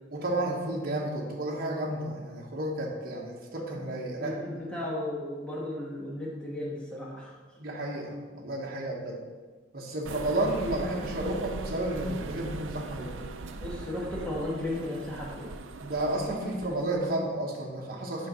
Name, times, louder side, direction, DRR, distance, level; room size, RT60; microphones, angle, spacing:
voice 1, 0.1-4.3 7.6-9.2 9.7-13.3 15.8-18.3, right 1 dB, 50° right, -2 dB, 1.2 m, -32 dB
voice 2, 4.1-7.3 13.6-15.5, left 1 dB, 5° left, -6 dB, 1.5 m, -35 dB
sound 1, 10.1-17.0, right 3 dB, 80° right, 0.5 m, -40 dB
6.6 x 4.6 x 5.5 m, 1.4 s
head